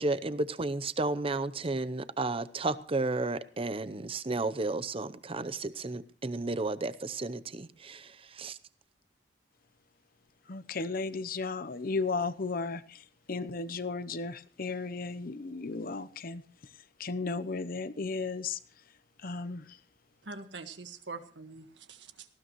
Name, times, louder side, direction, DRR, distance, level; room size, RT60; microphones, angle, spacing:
voice 1, 0.0-8.6, right 2 dB, 30° right, 0.7 m, -33 dB
voice 2, 10.5-13.0 13.3-16.4 17.0-18.6 19.2-19.6, left 4 dB, 55° left, 0.8 m, -34 dB
voice 3, 20.3-22.3, right 3 dB, 75° right, 1.6 m, -44 dB
19.0 x 15.5 x 3.1 m
head